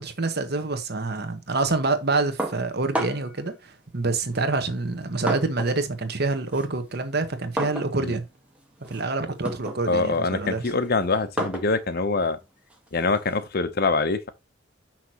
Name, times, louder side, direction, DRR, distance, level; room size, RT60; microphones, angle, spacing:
voice 1, 0.0-8.2 8.9-10.6, right 3 dB, 55° right, 1.3 m, -27 dB
sound 1, 2.4-3.4 4.3-5.9 6.2-13.5, right 1 dB, 5° right, 1.5 m, -34 dB
voice 2, 9.9-12.4 12.9-14.3, left 3 dB, 55° left, 0.8 m, -24 dB
6.1 x 6.0 x 3.0 m
head